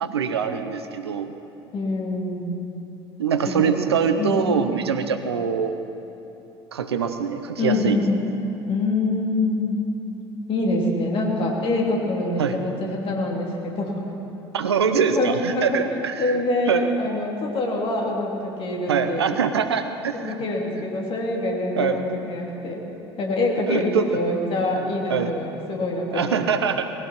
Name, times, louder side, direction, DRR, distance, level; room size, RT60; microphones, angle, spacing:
voice 1, 0.0-1.3 3.2-5.7 6.7-8.0 12.4-12.6 14.5-16.4 16.7-16.9 18.9-20.3 20.8-20.9 21.8-22.0 23.7-24.1 25.1-25.3 26.1-26.9, right 7 dB, 75° right, 9 dB, 0.8 m, -23 dB
voice 2, 1.7-2.6 3.5-3.8 4.2-4.6 7.6-8.2 8.7-9.8 10.5-14.1 14.9-15.8 16.2-19.2 20.1-22.8 23.2-26.2, left 2 dB, 40° left, -1 dB, 3.2 m, -25 dB
20.0 x 16.0 x 4.4 m, 3.0 s
figure-of-eight pair, 65°, 14 cm